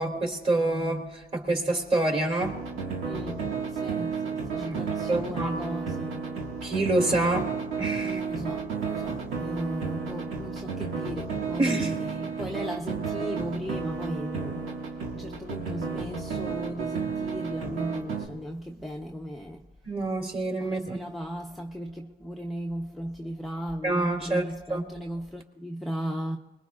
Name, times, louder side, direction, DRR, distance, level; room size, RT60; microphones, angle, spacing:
voice 1, 0.0-2.6 4.6-4.8 5.1-5.5 6.6-7.5 7.8-8.2 11.6-11.9 19.8-21.0 23.8-24.4 24.7-24.9, right 2 dB, 30° right, 3.2 m, -27 dB
sound 1, 2.4-18.3, right 5 dB, 90° right, 1.9 m, -32 dB
voice 2, 3.0-3.4 3.7-6.3 8.0-14.6 15.1-19.6 20.6-26.4, equal, ahead, 0.9 m, -36 dB
24.5 x 21.0 x 2.5 m
cardioid pair, 90°, 20 cm